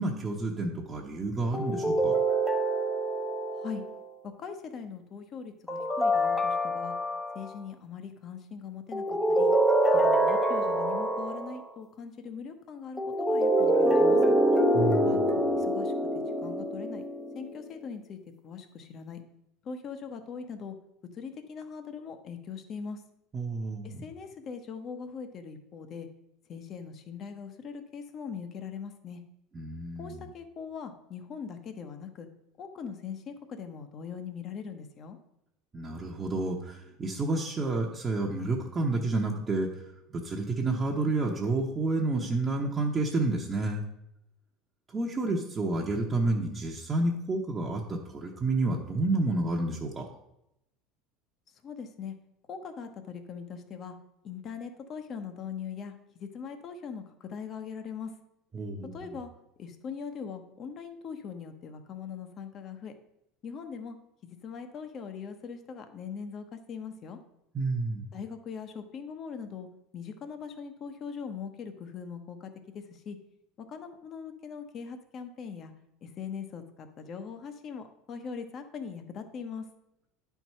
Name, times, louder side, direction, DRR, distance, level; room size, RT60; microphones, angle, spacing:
voice 1, 0.0-2.2 14.7-15.4 23.3-24.0 29.5-30.2 35.7-39.7 40.1-43.8 44.9-50.1 58.5-59.1 67.5-68.0, right 2 dB, 20° right, -2 dB, 0.9 m, -30 dB
sound 1, 1.5-4.0 5.7-7.5 8.9-11.6 13.0-17.5, right 1 dB, 5° left, 0.7 m, -25 dB
voice 2, 4.2-6.9 7.3-9.5 9.9-14.4 15.1-15.2 15.5-15.9 16.4-17.0 17.3-18.2 18.4-19.2 19.6-20.8 21.1-23.0 23.8-26.1 26.5-29.2 30.0-32.3 32.6-35.2 51.6-52.1 52.5-53.9 54.2-58.1 58.9-59.3 59.6-62.9 63.4-64.0 64.2-67.2 68.1-69.7 69.9-73.2 73.6-75.7 76.0-79.6, left 6 dB, 35° left, 7 dB, 0.9 m, -41 dB
10.0 x 4.6 x 5.6 m, 0.83 s
supercardioid pair, 150°, 0 cm